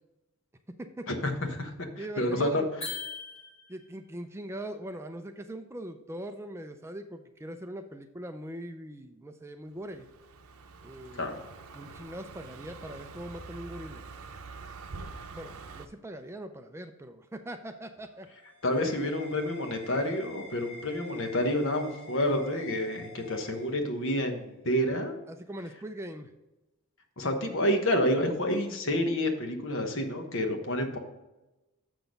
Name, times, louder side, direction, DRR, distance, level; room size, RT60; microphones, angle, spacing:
voice 1, 1.1-1.7 2.2-2.6 11.2-11.4 18.6-25.2 27.2-31.0, left 1 dB, 60° left, 5 dB, 1.1 m, -29 dB
voice 2, 2.0-2.9 3.7-10.0 10.8-11.4 11.7-14.0 15.3-18.3 25.3-26.3, right 1 dB, 10° right, 7 dB, 0.4 m, -41 dB
sound 1, 2.8-3.9, left 4 dB, 25° left, 2.0 m, -39 dB
Car passing by, 9.8-15.9, right 4 dB, 80° right, 0.7 m, -45 dB
sound 2, 18.0-24.3, left 1 dB, 85° left, 3.0 m, -49 dB
6.9 x 6.1 x 5.1 m, 1.0 s
head